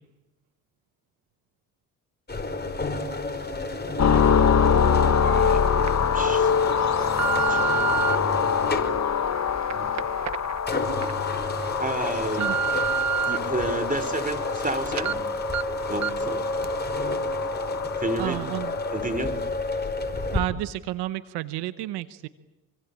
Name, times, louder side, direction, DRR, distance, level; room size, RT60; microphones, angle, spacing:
sound 1, 2.3-20.4, left 2 dB, 25° left, 5.1 m, -31 dB
sound 2, 4.0-19.1, left 7 dB, 45° left, 1.5 m, -25 dB
sound 3, 4.9-5.0 5.6-5.9 6.5-8.2 8.8-11.1 11.5-11.6 12.1-13.4 13.8-14.7 15.0-15.1 15.5-15.6 16.0-16.3 16.6-16.7, right 8 dB, 45° right, 1.0 m, -29 dB
voice 1, 5.2-6.5 7.5-8.0 9.7-10.1 11.8-12.6 13.2-15.2 15.9-16.4 17.7-18.5 18.9-19.4, right 2 dB, 20° right, 11 dB, 5.2 m, -31 dB
voice 2, 18.2-18.7 20.3-22.3, right 15 dB, 90° right, 14 dB, 1.0 m, -31 dB
27.5 x 23.5 x 8.7 m, 1.0 s
supercardioid pair, 60°, 38 cm